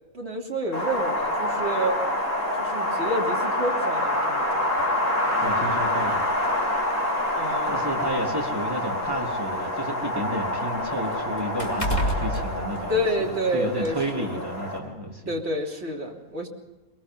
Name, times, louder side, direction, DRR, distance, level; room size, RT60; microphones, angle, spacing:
voice 1, 0.1-2.0 2.6-4.6 7.3-7.8 12.9-14.4 15.3-16.5, right 1 dB, 45° right, -1 dB, 3.3 m, -29 dB
Wind, 0.7-14.8, left 1 dB, 70° left, 6.3 m, -27 dB
sound 1, 4.8-5.0 6.0-6.1 6.6-6.7 7.6-9.6 10.0-13.4 13.8-14.0, equal, 20° left, 3.1 m, -31 dB
voice 2, 5.4-6.3 7.7-13.0 13.5-15.4, right 1 dB, 15° right, -1 dB, 3.5 m, -31 dB
22.5 x 22.0 x 5.6 m, 1.1 s
omnidirectional pair, 1.6 m